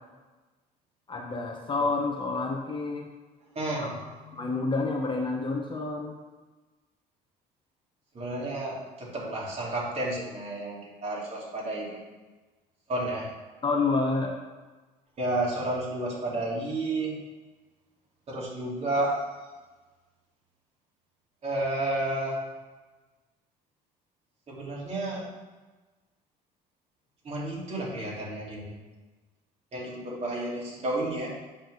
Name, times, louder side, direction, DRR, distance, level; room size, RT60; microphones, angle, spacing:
voice 1, 1.1-3.1 3.8-3.9 4.3-6.2 13.6-14.3, left 3 dB, 30° left, 1 dB, 1.2 m, -28 dB
voice 2, 3.5-3.9 4.4-4.5 8.1-12.0 12.9-13.3 15.2-17.2 18.3-19.1 21.4-22.4 24.5-25.2 27.2-28.7 29.7-31.3, right 2 dB, 40° right, -5 dB, 2.9 m, -31 dB
8.5 x 3.8 x 6.4 m, 1.2 s
cardioid pair, 110°, 17 cm